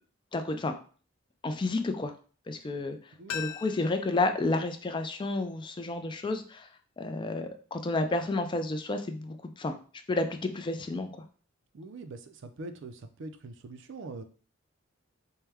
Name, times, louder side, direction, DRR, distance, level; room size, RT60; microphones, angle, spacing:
voice 1, 0.3-0.8 1.4-2.1 2.5-3.0 3.3-6.7 7.0-9.7 10.1-11.1, left 2 dB, 25° left, 7 dB, 0.3 m, -31 dB
sound 1, 3.3-6.1 6.4-6.5, left 10 dB, 80° left, 0.5 m, -43 dB
voice 2, 11.7-14.2, right 2 dB, 60° right, 8 dB, 0.4 m, -43 dB
4.5 x 2.1 x 3.4 m, 0.40 s
head